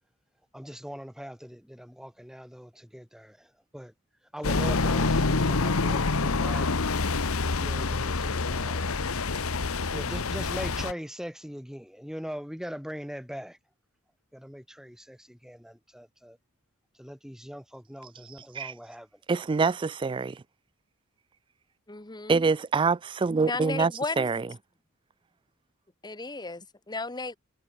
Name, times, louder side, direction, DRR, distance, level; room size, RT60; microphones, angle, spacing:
voice 1, 0.5-3.5 3.7-3.9 4.3-6.7 7.4-8.9 9.9-13.6 14.3-16.4 17.0-19.1, equal, ahead, 6.2 m, -41 dB
sound 1, 4.4-10.9, left 3 dB, 80° left, 1.2 m, -27 dB
voice 2, 19.3-20.4 22.3-23.9 24.2-24.4, right 4 dB, 25° right, 0.3 m, -25 dB
voice 3, 21.9-22.5 23.4-24.3 26.0-27.4, left 3 dB, 20° left, 1.4 m, -34 dB
head